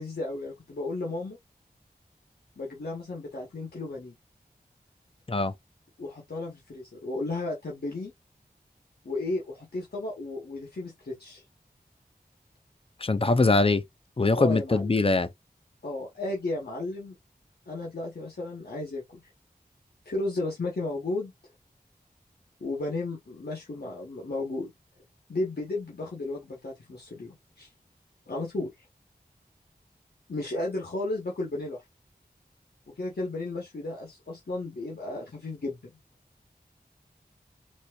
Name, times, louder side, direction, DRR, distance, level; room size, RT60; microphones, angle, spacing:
voice 1, 0.0-1.4 2.6-4.2 6.0-8.1 9.0-11.4 14.3-14.9 15.8-17.1 17.7-19.2 20.1-21.3 22.6-24.7 25.3-27.7 28.3-28.7 30.3-31.8 32.9-35.9, left 2 dB, 75° left, 1.0 m, -34 dB
voice 2, 13.0-13.8 14.2-15.3, left 3 dB, 35° left, 0.5 m, -22 dB
4.1 x 2.6 x 2.3 m
wide cardioid pair, 60°, 16 cm